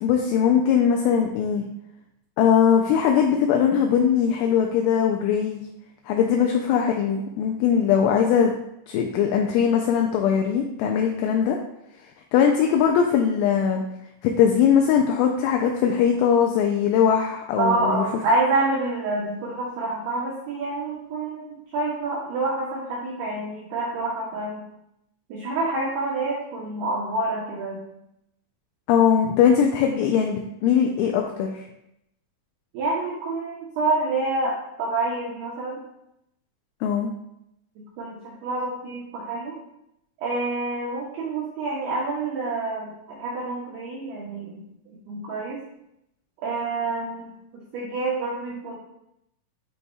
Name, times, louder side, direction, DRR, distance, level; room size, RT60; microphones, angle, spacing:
voice 1, 0.0-1.7 2.4-5.6 6.1-8.5 8.9-11.6 12.3-13.8 14.2-18.1 28.9-31.7 36.8-37.1, left 8 dB, 85° left, 2 dB, 2.7 m, -20 dB
voice 2, 17.6-24.6 25.3-27.8 32.7-35.8 38.0-39.6 40.2-44.6 45.1-45.6 46.4-48.8, right 2 dB, 85° right, -5 dB, 2.2 m, -27 dB
10.0 x 4.1 x 2.3 m, 0.82 s
omnidirectional pair, 5.9 m